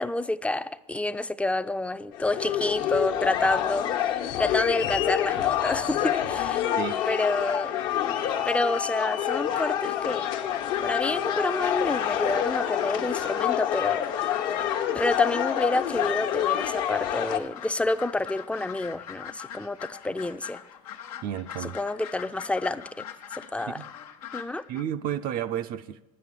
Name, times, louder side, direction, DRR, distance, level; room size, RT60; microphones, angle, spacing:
voice 1, 0.0-6.6 7.1-8.2 8.4-10.3 10.8-14.1 14.9-20.6 21.6-23.0 23.3-23.8 24.3-24.6, left 2 dB, 5° left, 0.4 m, -29 dB
sound 1, 2.1-17.4, left 11 dB, 70° left, 1.1 m, -27 dB
sound 2, 5.2-24.8, left 9 dB, 90° left, 0.8 m, -42 dB
voice 2, 21.2-21.8 23.7-23.9 24.7-26.0, right 10 dB, 55° right, 0.5 m, -32 dB
9.8 x 7.6 x 9.5 m
supercardioid pair, 90°, 18 cm